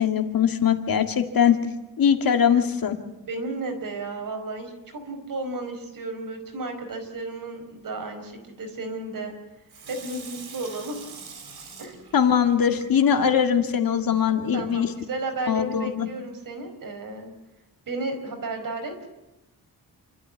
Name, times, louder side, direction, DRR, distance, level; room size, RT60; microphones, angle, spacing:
voice 1, 0.0-1.6 2.0-3.0 12.1-14.9 15.5-16.1, left 8 dB, 65° left, 6 dB, 2.1 m, -21 dB
voice 2, 3.3-9.3 9.9-11.0 11.8-12.0 14.5-17.3 17.9-18.9, right 2 dB, 60° right, 5 dB, 4.9 m, -33 dB
Water tap faucet / Sink (filling or washing), 9.7-13.5 14.0-14.1, right 5 dB, 85° right, 4.9 m, -44 dB
28.0 x 13.0 x 9.6 m, 1.0 s
wide cardioid pair, 175°, 37 cm